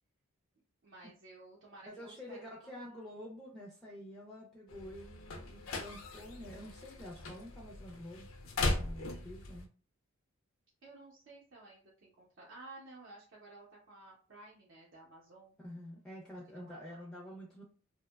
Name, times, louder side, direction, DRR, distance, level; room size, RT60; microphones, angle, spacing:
voice 1, 0.8-3.1 10.8-15.5 16.5-17.1, right 2 dB, 60° right, -5 dB, 0.6 m, -54 dB
voice 2, 1.9-8.3 8.6-9.7 15.6-17.6, equal, 5° left, -4 dB, 0.4 m, -48 dB
sound 1, 4.7-9.7, left 2 dB, 65° left, 0.4 m, -39 dB
2.7 x 2.1 x 2.2 m, 0.41 s
head